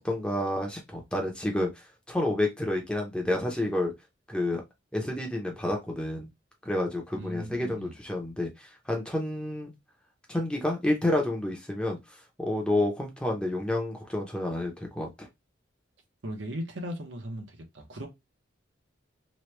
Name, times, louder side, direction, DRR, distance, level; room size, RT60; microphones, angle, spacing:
voice 1, 0.0-1.7 2.1-3.9 4.3-4.6 4.9-6.3 6.6-9.7 10.3-12.0 12.4-15.3, left 1 dB, 5° left, 0.6 m, -29 dB
voice 2, 7.2-8.0 16.2-18.1, equal, 75° right, 0.9 m, -37 dB
3.0 x 2.2 x 3.1 m
head